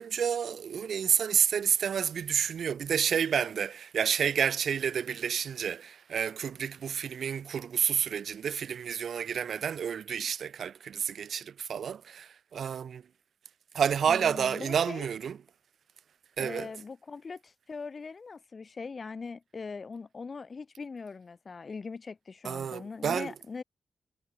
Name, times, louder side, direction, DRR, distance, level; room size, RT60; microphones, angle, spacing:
voice 1, 0.0-13.0 13.7-15.4 16.4-16.7 22.4-23.3, right 7 dB, 65° right, 0.6 m, -30 dB
voice 2, 14.1-15.1 16.4-23.6, left 4 dB, 35° left, 6.6 m, -41 dB
wide cardioid pair, 160°, 0 cm